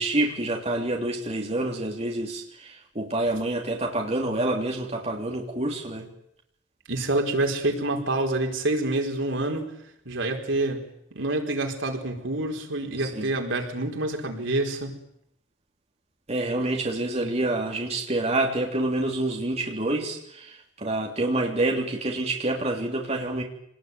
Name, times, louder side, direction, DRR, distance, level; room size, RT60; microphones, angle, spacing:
voice 1, 0.0-6.1 13.0-13.3 16.3-23.4, right 2 dB, 35° right, 1 dB, 3.2 m, -27 dB
voice 2, 6.9-9.7 10.0-10.9 11.1-14.9, right 2 dB, 80° right, 2 dB, 4.6 m, -27 dB
26.5 x 20.0 x 9.5 m, 0.76 s
head